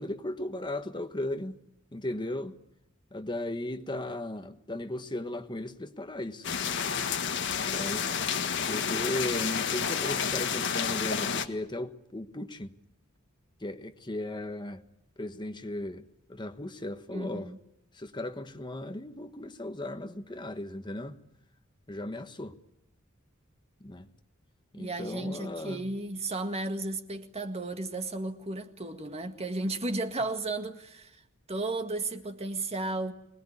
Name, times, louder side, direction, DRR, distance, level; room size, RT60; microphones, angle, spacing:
voice 1, 0.0-1.6 1.9-2.5 3.1-6.5 7.6-8.0 8.7-12.7 13.6-14.8 15.2-16.0 16.3-17.5 17.9-21.2 21.9-22.5 23.8-24.1 24.7-26.0, left 1 dB, 20° left, 1.2 m, -36 dB
sound 1, 6.4-11.5, left 7 dB, 60° left, 1.6 m, -30 dB
voice 2, 17.1-17.6 24.8-31.2 31.5-33.1, right 2 dB, 30° right, 1.8 m, -34 dB
25.5 x 20.5 x 9.9 m
head